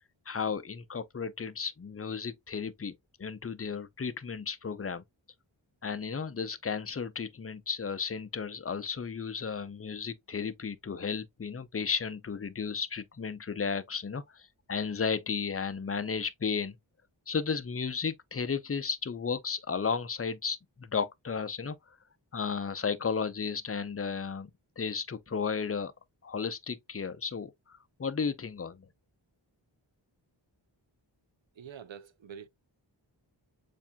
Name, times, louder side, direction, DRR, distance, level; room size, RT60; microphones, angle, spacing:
voice 1, 0.3-5.0 5.8-16.8 17.3-21.8 22.3-24.5 24.8-25.9 26.2-28.9, left 5 dB, 30° left, 0.6 m, -34 dB
voice 2, 31.5-32.5, right 7 dB, 75° right, 0.6 m, -46 dB
7.0 x 2.6 x 2.2 m
wide cardioid pair, 60°, 46 cm